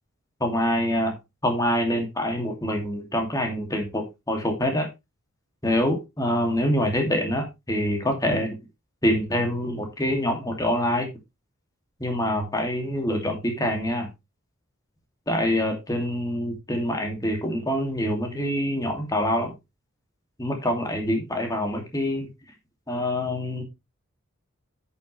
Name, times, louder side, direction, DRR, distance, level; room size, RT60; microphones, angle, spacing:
voice 1, 0.4-1.2 1.4-4.9 5.6-8.6 9.0-11.1 12.0-14.1 15.3-19.5 20.4-22.3 22.9-23.6, left 1 dB, 15° left, 3 dB, 2.4 m, -25 dB
10.5 x 7.2 x 3.2 m, 0.22 s
head